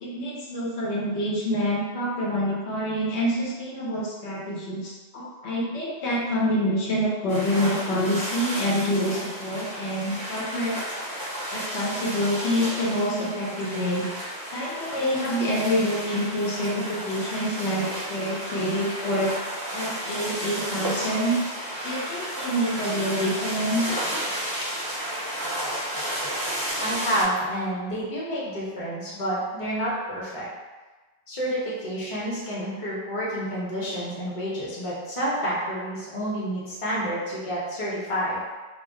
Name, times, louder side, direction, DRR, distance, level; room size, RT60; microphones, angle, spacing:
voice 1, 0.0-10.7 11.5-14.1 14.5-19.3 19.7-21.4 21.8-23.8, equal, 85° left, -4 dB, 0.9 m, -27 dB
sound 1, 7.3-27.2, equal, 25° right, 0.5 m, -32 dB
voice 2, 26.8-30.5 31.3-38.4, equal, 35° left, -7 dB, 0.8 m, -29 dB
2.2 x 2.1 x 3.6 m, 1.3 s
omnidirectional pair, 1.1 m